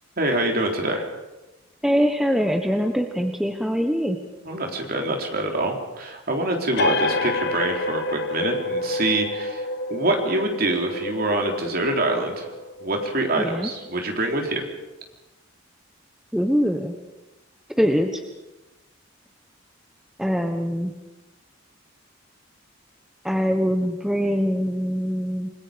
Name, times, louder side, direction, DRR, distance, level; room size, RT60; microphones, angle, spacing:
voice 1, 0.2-1.1 4.5-12.5 12.8-14.6, right 1 dB, 50° right, 2 dB, 3.8 m, -25 dB
voice 2, 1.8-4.2 13.4-13.7 16.3-17.0 17.8-18.2 20.2-20.9 23.2-25.5, equal, ahead, 4 dB, 1.3 m, -23 dB
sound 1, 6.8-14.0, left 2 dB, 55° left, 1.3 m, -29 dB
28.5 x 21.0 x 5.2 m, 1.1 s
head